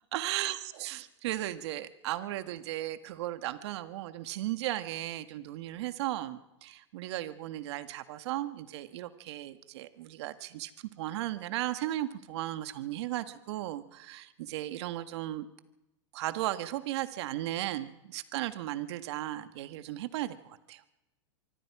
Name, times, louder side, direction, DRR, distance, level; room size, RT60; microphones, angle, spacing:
voice 1, 0.1-10.7 11.0-15.5 16.1-20.8, right 14 dB, 65° right, 10 dB, 1.8 m, -36 dB
25.5 x 23.5 x 4.9 m, 0.96 s
hypercardioid pair, 120°, 15 cm